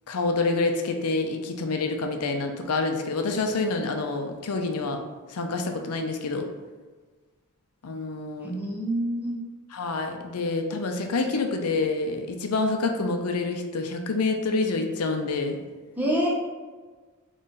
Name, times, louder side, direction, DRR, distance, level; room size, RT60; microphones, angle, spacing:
voice 1, 0.1-5.0 5.3-6.5 7.8-8.5 9.7-15.6, left 3 dB, 90° left, 5 dB, 0.5 m, -27 dB
voice 2, 8.4-9.4 16.0-16.3, equal, 10° right, -3 dB, 0.8 m, -26 dB
3.9 x 3.1 x 4.0 m, 1.4 s
head